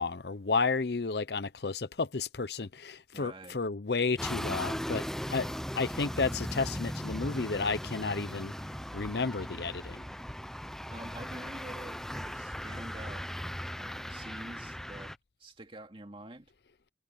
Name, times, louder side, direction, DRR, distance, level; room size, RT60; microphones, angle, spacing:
voice 1, 0.0-5.0 5.3-5.5 5.8-8.5 8.9-10.0, left 4 dB, 65° left, 0.8 m, -32 dB
voice 2, 3.1-3.6 10.9-13.3 13.8-15.1 15.4-16.5, right 1 dB, 30° right, 2.5 m, -47 dB
sound 1, 4.2-15.2, equal, 5° left, 0.7 m, -38 dB
head